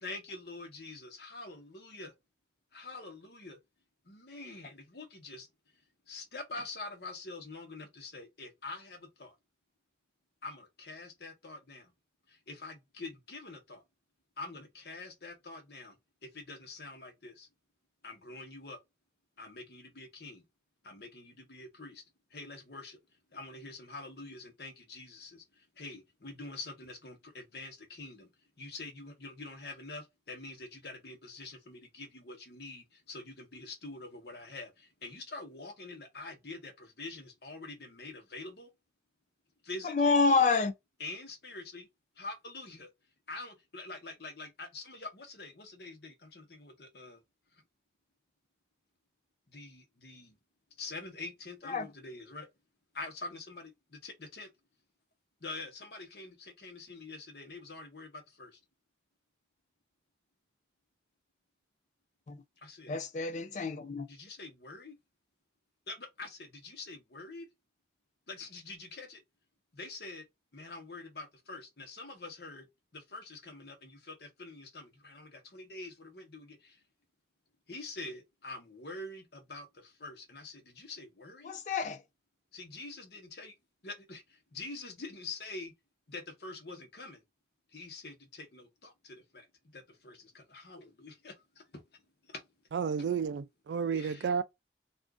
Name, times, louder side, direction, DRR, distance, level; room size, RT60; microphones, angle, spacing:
voice 1, 0.0-2.1 2.7-3.6 4.0-5.5 6.1-9.3 10.4-11.9 12.3-13.8 14.4-16.0 16.2-17.5 18.0-18.8 19.4-20.4 20.8-22.0 22.3-23.0 23.3-28.3 28.6-38.7 39.6-40.1 41.0-41.9 42.2-42.9 43.3-47.2 47.5-47.6 49.5-50.3 50.8-52.5 52.9-54.5 55.4-58.6 62.6-63.0 64.1-65.0 65.9-67.5 68.3-69.2 69.7-70.2 70.5-72.7 72.9-76.8 77.7-81.5 82.5-83.5 83.8-85.7 86.1-87.2 87.7-89.5 89.7-92.5 93.9-94.3, left 3 dB, 65° left, 1.0 m, -45 dB
voice 2, 39.8-40.7 51.7-51.9 62.3-62.4 62.9-64.1 81.4-82.0, left 4 dB, 40° left, 0.4 m, -28 dB
voice 3, 92.7-94.4, right 6 dB, 85° right, 0.3 m, -31 dB
2.5 x 2.4 x 3.5 m
head